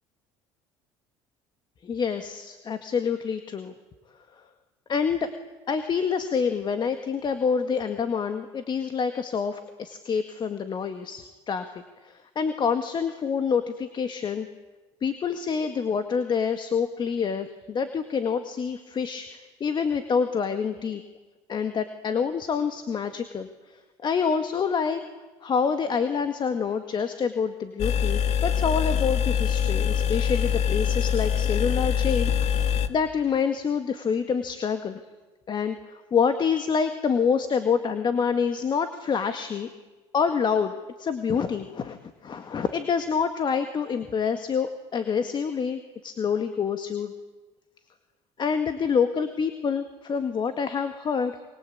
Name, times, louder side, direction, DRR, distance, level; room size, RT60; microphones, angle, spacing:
voice 1, 1.8-3.7 4.9-5.3 5.7-14.5 15.0-21.0 21.5-23.5 24.0-25.0 25.4-35.0 35.5-35.8 36.1-39.7 40.1-40.7 41.0-47.1 48.4-51.3, left 6 dB, 40° left, 9 dB, 2.0 m, -27 dB
sound 1, 27.8-32.9, left 8 dB, 65° left, 1.7 m, -24 dB
25.5 x 24.5 x 8.7 m, 1.2 s
supercardioid pair, 95°, 12 cm